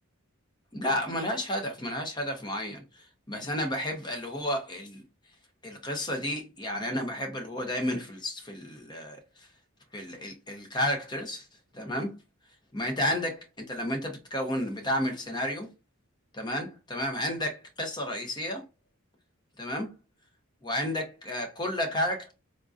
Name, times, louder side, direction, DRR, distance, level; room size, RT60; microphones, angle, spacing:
voice 1, 0.7-5.0 5.6-9.5 9.9-11.5 11.7-12.1 12.7-15.7 16.3-18.6 19.6-19.9 20.6-22.3, left 1 dB, 20° left, 0.8 m, -32 dB
3.6 x 2.5 x 2.4 m
head